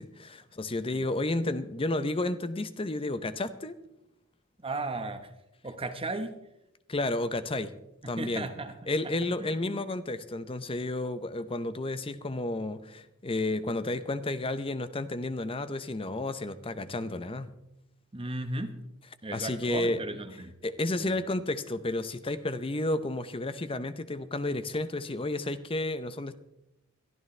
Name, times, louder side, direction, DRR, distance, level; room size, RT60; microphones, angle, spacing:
voice 1, 0.0-3.8 6.9-7.7 8.1-8.5 8.9-17.6 19.3-20.0 20.6-26.4, left 2 dB, 25° left, 12 dB, 0.7 m, -32 dB
voice 2, 4.6-5.3 5.6-6.3 8.0-8.7 9.0-9.6 18.1-18.8 19.2-20.5 21.0-21.2, right 2 dB, 25° right, 7 dB, 1.1 m, -36 dB
21.5 x 12.0 x 3.3 m, 0.87 s
head